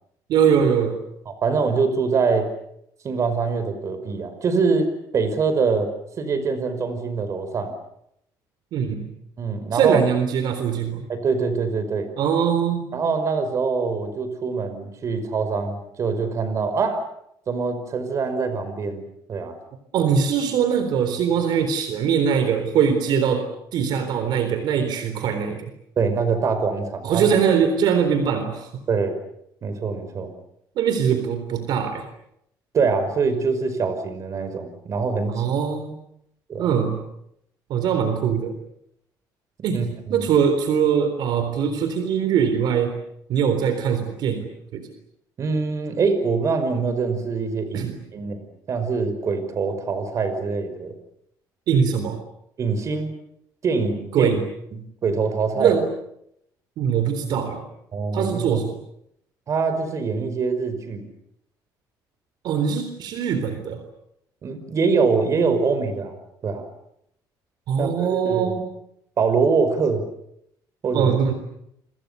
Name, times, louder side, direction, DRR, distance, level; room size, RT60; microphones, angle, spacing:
voice 1, 0.3-1.0 8.7-9.1 9.7-11.1 12.2-12.9 19.9-23.5 23.7-25.7 27.0-28.7 30.8-32.0 35.3-36.0 36.6-37.0 37.7-38.5 39.6-43.0 43.3-44.9 47.7-48.0 51.7-52.2 54.1-54.4 55.6-55.9 56.8-57.6 58.1-58.7 62.4-63.8 67.7-68.7 70.9-71.3, right 7 dB, 70° right, 8 dB, 3.9 m, -22 dB
voice 2, 1.3-2.5 3.0-5.9 6.2-7.7 9.4-10.0 11.1-12.1 12.9-17.0 17.5-19.0 19.3-19.6 26.0-27.3 28.9-29.2 29.6-30.3 32.7-35.4 36.5-36.7 39.7-40.3 45.4-50.9 52.6-53.1 53.6-54.4 54.7-55.7 57.9-58.6 59.5-61.1 64.4-66.2 66.4-66.6 67.8-68.5 69.2-70.0 70.8-71.1, right 4 dB, 40° right, 10 dB, 5.5 m, -24 dB
29.5 x 25.5 x 6.9 m, 0.76 s
cardioid pair, 135°, 8 cm